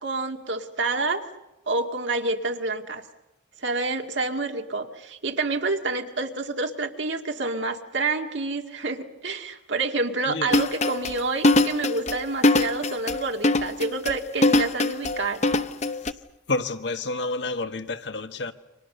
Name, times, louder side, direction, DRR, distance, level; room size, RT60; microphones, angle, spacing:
voice 1, 0.0-1.2 1.7-3.0 3.6-15.4, right 3 dB, 75° right, 2.2 m, -28 dB
voice 2, 10.3-10.6 16.5-18.5, left 3 dB, 65° left, 1.5 m, -29 dB
sound 1, 10.5-16.1, left 2 dB, 35° left, 0.8 m, -22 dB
29.5 x 25.5 x 6.8 m
head